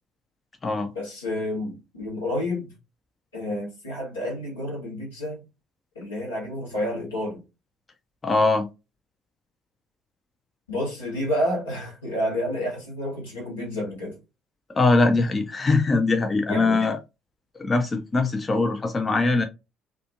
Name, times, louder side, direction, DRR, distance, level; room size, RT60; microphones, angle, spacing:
voice 1, 0.9-2.7 3.3-5.4 5.9-7.4 10.7-14.2 16.5-16.8, left 1 dB, 80° left, 1.2 m, -29 dB
voice 2, 8.2-8.7 14.7-17.0 17.6-19.4, left 3 dB, 30° left, 0.4 m, -22 dB
2.5 x 2.4 x 2.7 m
figure-of-eight pair, 50°, 0 cm